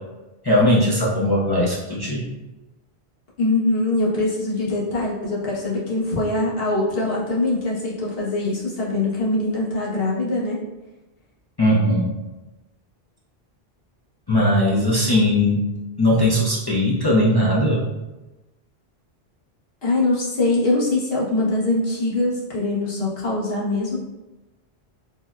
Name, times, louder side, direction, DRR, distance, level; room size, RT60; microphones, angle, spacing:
voice 1, 0.4-2.2 11.6-12.1 14.3-15.6 16.0-17.8, left 1 dB, 40° left, -7 dB, 0.3 m, -19 dB
voice 2, 3.4-10.6 19.8-24.0, left 2 dB, 70° left, -6 dB, 1.1 m, -23 dB
3.9 x 2.1 x 2.3 m, 1.1 s
omnidirectional pair, 1.1 m